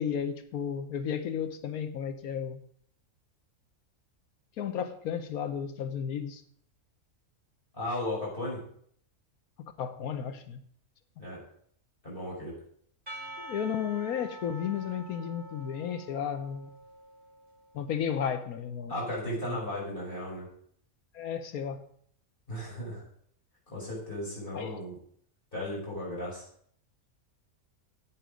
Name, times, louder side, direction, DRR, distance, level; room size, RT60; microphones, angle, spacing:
voice 1, 0.0-2.6 4.6-6.4 9.6-10.6 13.4-16.7 17.7-18.9 19.3-19.6 21.1-21.9 24.5-24.8, left 8 dB, 90° left, 9 dB, 1.3 m, -33 dB
voice 2, 7.7-8.6 11.2-11.4 12.0-12.6 18.9-20.5 22.5-23.0 23.7-24.9 25.5-26.4, left 1 dB, 35° left, -5 dB, 5.8 m, -35 dB
Percussion / Church bell, 13.1-17.6, right 1 dB, 35° right, 4.5 m, -46 dB
10.0 x 8.8 x 5.1 m, 0.64 s
omnidirectional pair, 1.5 m